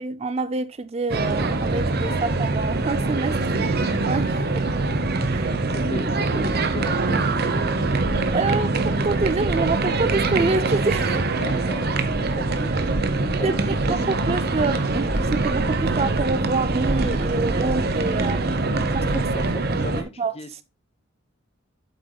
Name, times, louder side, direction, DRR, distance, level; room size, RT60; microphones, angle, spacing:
voice 1, 0.0-4.6 5.3-5.5 8.3-11.1 13.4-18.4 18.9-19.2 20.2-20.3, right 3 dB, 30° right, 0.4 m, -27 dB
sound 1, 1.1-20.0, right 3 dB, 50° right, 0.9 m, -23 dB
voice 2, 5.7-7.2 11.1-14.2 19.1-20.6, left 1 dB, 30° left, 0.9 m, -37 dB
8.2 x 7.8 x 2.3 m
head